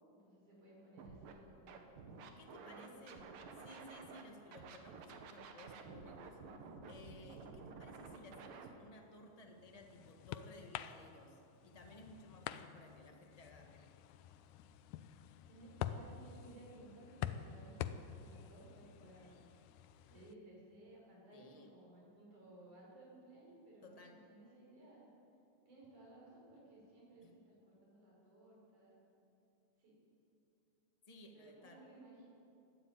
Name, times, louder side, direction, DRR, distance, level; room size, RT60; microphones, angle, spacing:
voice 1, 0.1-2.0 2.6-3.4 15.1-19.4 20.1-25.1 25.7-29.0 29.8-30.0 31.3-32.3, right 1 dB, 60° right, -4 dB, 7.3 m, -59 dB
Scratching (performance technique), 1.0-1.3 1.7-4.2 4.5-8.7, right 5 dB, 80° right, 3.1 m, -52 dB
voice 2, 2.2-3.3 3.6-6.4 6.8-13.8 21.3-21.7 23.8-24.2 27.2-27.3 31.1-31.8, left 1 dB, 55° left, 2 dB, 0.4 m, -58 dB
sound 1, 9.2-20.3, left 10 dB, 75° left, 1.9 m, -48 dB
21.0 x 14.0 x 9.2 m, 2.7 s
omnidirectional pair, 4.0 m